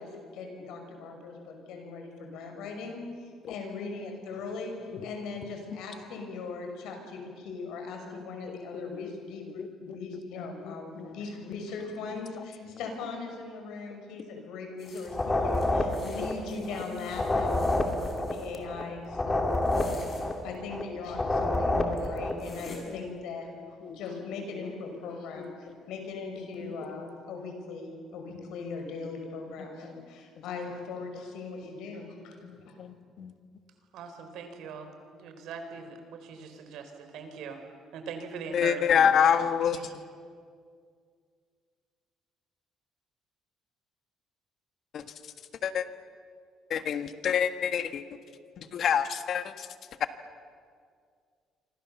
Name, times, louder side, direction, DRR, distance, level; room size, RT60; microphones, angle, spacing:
voice 1, 0.0-4.7 5.0-19.4 19.7-20.0 20.4-32.4 32.6-32.8, left 4 dB, 85° left, 4 dB, 5.9 m, -39 dB
voice 2, 8.5-9.0 10.6-11.1 15.6-15.7 17.7-17.9 22.9-23.0 23.8-24.0 25.4-25.5 32.4-33.3 38.5-39.8 44.9-45.0 45.6-45.8 46.7-48.0 48.6-49.7, left 8 dB, 55° left, 10 dB, 1.5 m, -27 dB
sound 1, 14.8-18.5 19.5-20.3 21.4-21.5 22.0-22.1 22.4-22.8, left 3 dB, 40° left, 6.3 m, -50 dB
sound 2, 15.1-16.8 17.1-20.8 21.1-22.4, left 2 dB, 15° left, 2.5 m, -28 dB
voice 3, 33.9-37.6 37.9-39.3 39.7-39.9, right 5 dB, 75° right, 7 dB, 4.1 m, -41 dB
28.5 x 25.0 x 7.1 m, 2.2 s
cardioid pair, 130°, 0 cm